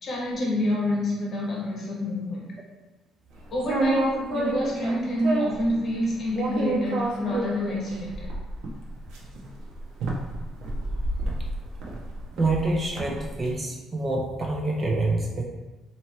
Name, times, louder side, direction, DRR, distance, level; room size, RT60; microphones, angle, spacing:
voice 1, 0.0-2.5 3.5-8.3, left 1 dB, 40° left, -3 dB, 1.2 m, -28 dB
sound 1, 3.5-5.7 6.3-13.4, right 2 dB, 80° right, 0.8 m, -29 dB
voice 2, 12.4-15.4, right 2 dB, 25° right, 0 dB, 0.5 m, -26 dB
3.1 x 2.8 x 4.4 m, 1.1 s
cardioid pair, 150°, 0 cm